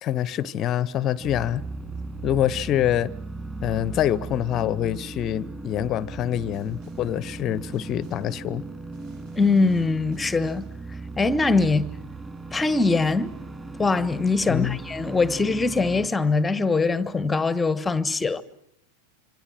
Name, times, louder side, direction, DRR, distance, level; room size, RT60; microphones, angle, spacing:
voice 1, 0.0-1.6 2.2-3.1 3.6-8.7 14.5-14.8, left 11 dB, 30° left, 1.0 m, -25 dB
sound 1, 1.2-16.1, right 3 dB, 10° right, 3.2 m, -37 dB
Snare drum, 6.5-7.2 7.7-8.4 8.9-10.8, right 3 dB, 45° right, 7.2 m, -57 dB
voice 2, 9.3-10.6 11.2-11.9 12.5-13.4 13.8-18.4, left 3 dB, 10° left, 1.3 m, -22 dB
26.5 x 26.5 x 7.6 m
figure-of-eight pair, 90°, 0 cm